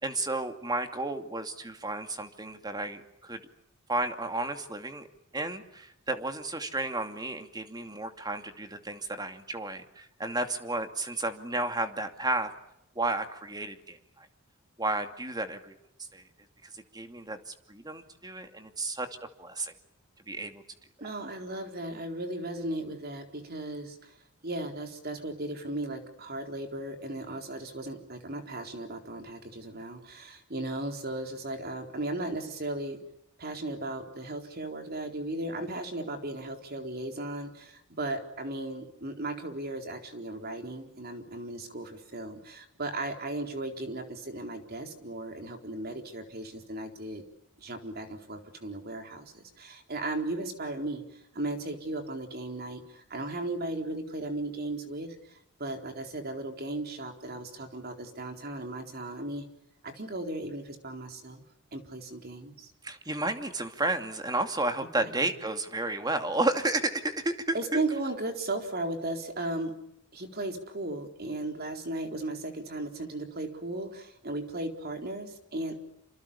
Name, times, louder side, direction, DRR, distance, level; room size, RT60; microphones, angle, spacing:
voice 1, 0.0-3.4 3.9-5.1 5.3-12.5 13.0-14.3 14.8-15.8 16.1-16.2 16.7-19.1 19.4-19.7 20.3-20.6 62.8-67.8, right 2 dB, 20° right, 7 dB, 2.5 m, -32 dB
voice 2, 21.0-24.1 24.4-33.0 33.4-47.2 47.6-59.5 59.8-61.4 61.7-62.7 65.0-65.3 67.5-69.7 70.1-75.9, right 2 dB, 45° right, 5 dB, 4.1 m, -36 dB
28.0 x 27.0 x 7.1 m, 0.80 s
head